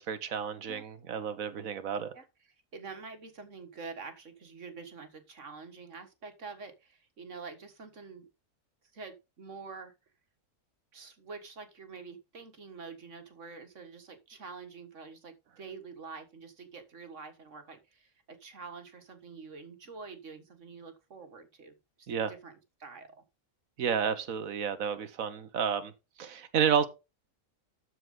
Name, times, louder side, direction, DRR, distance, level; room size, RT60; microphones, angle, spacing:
voice 1, 0.0-2.1 22.1-22.3 23.8-25.9 26.2-26.9, right 7 dB, 90° right, 1.5 m, -31 dB
voice 2, 2.7-8.3 8.9-9.9 10.9-22.5 22.8-23.2, right 4 dB, 65° right, 2.0 m, -46 dB
13.0 x 4.8 x 3.8 m
omnidirectional pair, 1.4 m